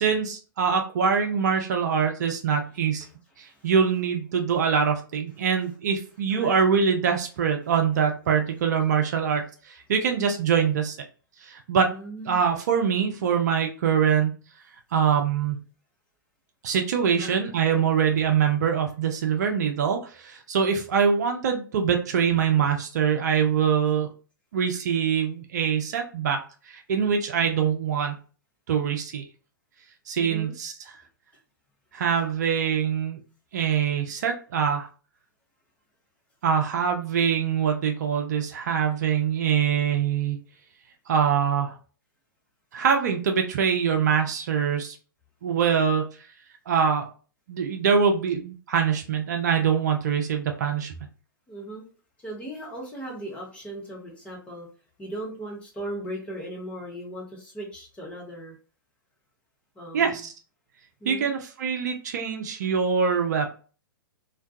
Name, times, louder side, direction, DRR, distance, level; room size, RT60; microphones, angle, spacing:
voice 1, 0.0-3.0 3.4-11.0 11.4-11.9 12.3-14.3 14.9-15.6 16.6-24.1 24.5-26.4 26.7-28.2 28.7-29.2 30.1-31.0 31.9-33.2 33.5-34.9 36.4-40.4 41.1-41.8 42.7-45.0 45.4-46.0 46.7-47.1 47.5-50.9 59.9-60.3 61.0-63.5, right 7 dB, 50° right, 4 dB, 0.4 m, -24 dB
voice 2, 3.4-3.7 6.3-6.6 11.9-12.4 17.2-17.4 30.2-30.5 51.5-51.9 52.2-54.7 55.0-58.5 59.8-60.3 61.0-61.3, right 1 dB, 10° left, -3 dB, 0.8 m, -38 dB
2.2 x 2.2 x 2.6 m, 0.37 s
figure-of-eight pair, 110°, 12 cm